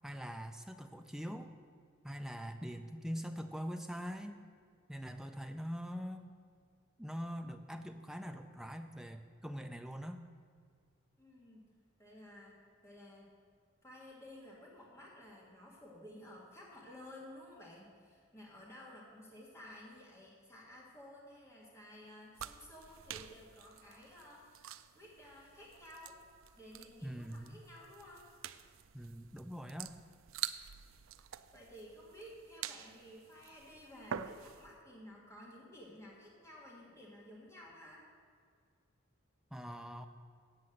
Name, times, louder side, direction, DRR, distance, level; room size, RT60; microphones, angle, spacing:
voice 1, 0.0-1.5 2.0-4.4 4.9-6.3 7.0-10.2 27.0-27.6 28.9-29.9 39.5-40.1, equal, ahead, 6 dB, 0.4 m, -43 dB
voice 2, 11.2-11.6 12.0-12.6 12.8-13.3 13.8-26.2 26.6-28.3 31.5-38.0, left 1 dB, 15° left, -4 dB, 1.6 m, -54 dB
sound 1, 22.3-34.8, right 9 dB, 70° right, 0.4 m, -47 dB
8.4 x 7.8 x 7.7 m, 2.1 s
head